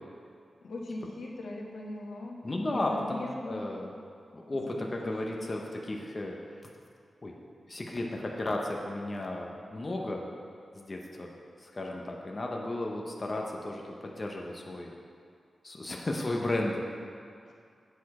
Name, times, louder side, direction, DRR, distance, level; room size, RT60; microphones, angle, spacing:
voice 1, 0.6-3.6 4.8-5.5 17.4-17.5, left 2 dB, 90° left, -2 dB, 1.2 m, -40 dB
voice 2, 2.4-3.9 4.3-6.4 7.2-7.3 7.7-10.3 10.7-11.3 11.6-14.9 15.6-16.8, left 1 dB, 25° left, 0 dB, 0.7 m, -34 dB
8.3 x 6.6 x 4.7 m, 2.3 s
wide cardioid pair, 165°, 0 cm